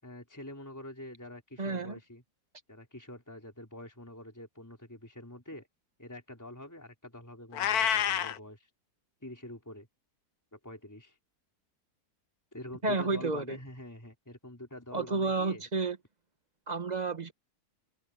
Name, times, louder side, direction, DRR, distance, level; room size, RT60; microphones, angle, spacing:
voice 1, 0.0-2.2 2.7-5.7 6.0-8.7 9.2-9.9 10.5-11.2 12.5-15.7, left 1 dB, 10° left, 4.3 m, -46 dB
voice 2, 1.6-1.9 12.8-13.6 14.9-16.0 16.7-17.3, right 3 dB, 30° right, 1.2 m, -31 dB
Meow, 7.5-8.4, left 9 dB, 70° left, 1.3 m, -28 dB
open air
omnidirectional pair, 1.7 m